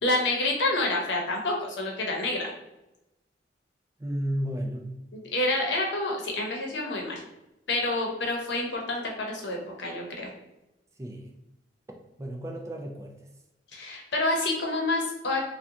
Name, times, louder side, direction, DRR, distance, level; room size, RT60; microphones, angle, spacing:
voice 1, 0.0-2.5 5.1-7.2 7.7-10.3 13.7-15.4, left 2 dB, 75° left, 0 dB, 0.8 m, -28 dB
voice 2, 4.0-5.0 11.0-11.3 12.2-13.2, equal, 15° right, 1 dB, 0.3 m, -33 dB
2.7 x 2.2 x 3.6 m, 0.93 s
head